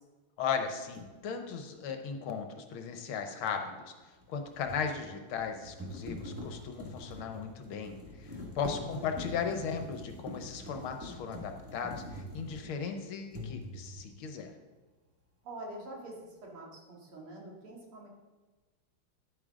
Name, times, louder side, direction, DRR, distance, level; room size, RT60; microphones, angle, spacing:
voice 1, 0.4-3.9 4.3-14.5, left 6 dB, 80° left, 6 dB, 1.8 m, -37 dB
sound 1, 0.9-1.1 4.2-12.9 13.3-14.1, left 1 dB, 5° right, 1.7 m, -44 dB
voice 2, 8.6-9.1 15.4-18.1, right 1 dB, 85° right, -2 dB, 2.9 m, -46 dB
10.5 x 8.7 x 3.7 m, 1.3 s
omnidirectional pair, 2.3 m